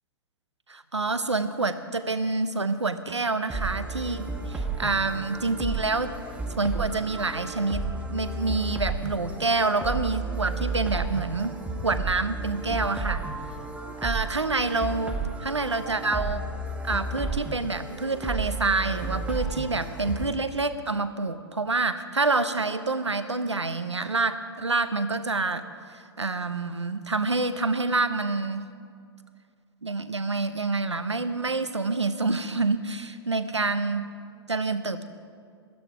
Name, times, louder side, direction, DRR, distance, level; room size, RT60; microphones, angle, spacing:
voice 1, 0.7-6.1 6.6-7.8 8.1-11.6 11.8-13.2 14.0-16.4 16.8-25.6 25.9-28.7 29.8-34.1 34.5-35.1, right 3 dB, 85° right, 11 dB, 0.8 m, -27 dB
sound 1, 3.5-20.3, right 3 dB, 10° right, 1.4 m, -33 dB
16.5 x 12.5 x 4.9 m, 2.2 s
figure-of-eight pair, 105°, 14 cm